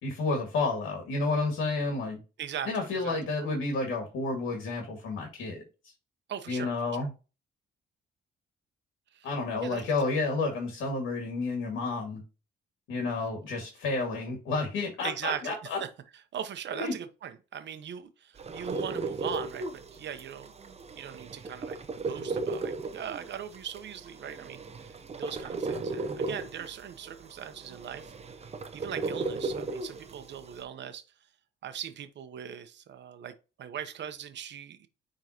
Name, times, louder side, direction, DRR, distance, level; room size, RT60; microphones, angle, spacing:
voice 1, 0.0-2.2 2.7-5.9 6.5-7.1 9.2-12.2 12.9-15.8 16.7-17.0, left 3 dB, 80° left, 2.1 m, -31 dB
voice 2, 2.4-3.2 6.3-6.7 9.1-9.3 9.6-9.8 15.0-15.9 16.3-20.5 21.0-28.1 28.7-31.0 31.6-33.3 33.6-34.9, right 9 dB, 65° right, 1.0 m, -40 dB
sound 1, 18.4-30.6, right 3 dB, 30° right, 0.8 m, -36 dB
9.2 x 3.9 x 2.9 m
cardioid pair, 90°, 20 cm